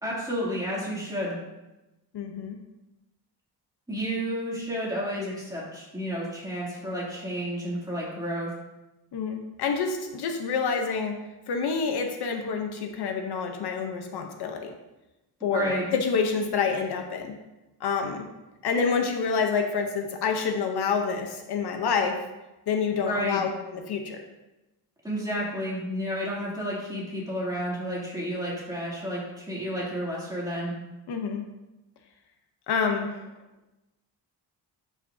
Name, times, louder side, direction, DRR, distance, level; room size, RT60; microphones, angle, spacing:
voice 1, 0.0-1.4 3.9-8.5 15.5-15.9 23.1-23.4 25.0-30.7, equal, 10° right, -6 dB, 2.7 m, -31 dB
voice 2, 2.1-2.6 9.1-11.1 11.5-14.7 15.4-17.3 17.8-18.3 18.6-22.1 22.7-24.2 31.1-31.4 32.7-33.2, left 5 dB, 65° left, 4 dB, 0.9 m, -27 dB
11.5 x 5.9 x 2.7 m, 1.0 s
wide cardioid pair, 150°, 41 cm